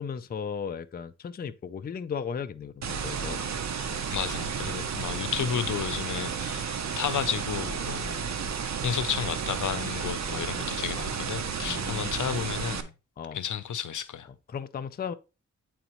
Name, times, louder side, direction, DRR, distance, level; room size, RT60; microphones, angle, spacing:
voice 1, 0.0-3.4 11.6-12.3 13.2-13.4 14.5-15.1, left 6 dB, 35° left, 0.4 m, -36 dB
sound 1, 2.8-12.8, right 6 dB, 65° right, 0.7 m, -32 dB
voice 2, 4.1-6.7 7.0-8.2 8.8-12.9 13.3-14.3, left 8 dB, 85° left, 0.6 m, -32 dB
8.7 x 4.0 x 3.0 m
wide cardioid pair, 90°, 30 cm